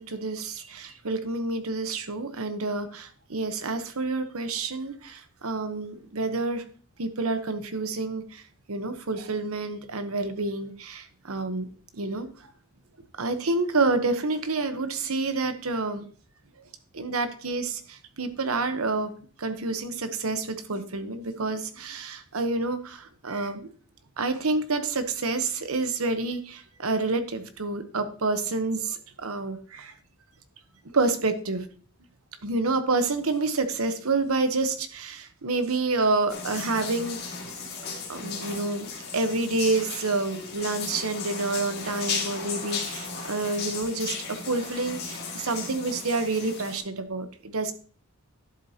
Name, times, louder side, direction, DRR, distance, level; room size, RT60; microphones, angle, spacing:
voice 1, 0.0-6.6 7.0-8.4 8.7-11.7 11.9-12.3 13.2-16.0 16.9-19.1 19.4-23.7 24.2-29.9 30.9-31.7 32.4-37.2 38.1-38.9 39.1-47.7, right 3 dB, 75° right, 9 dB, 1.0 m, -28 dB
sound 1, 36.3-46.8, left 5 dB, 50° left, 2.3 m, -35 dB
11.5 x 7.4 x 2.9 m, 0.42 s
head